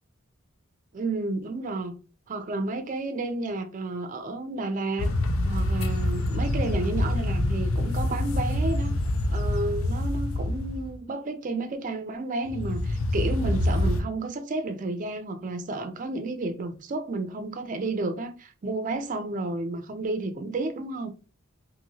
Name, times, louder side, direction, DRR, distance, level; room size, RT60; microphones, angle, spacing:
voice 1, 0.9-1.9 2.3-5.1 5.4-8.9 9.3-21.1, right 2 dB, 40° right, 0.4 m, -31 dB
sound 1, 5.0-10.9 12.5-14.0, left 1 dB, 75° left, 0.4 m, -26 dB
2.6 x 2.6 x 2.8 m
head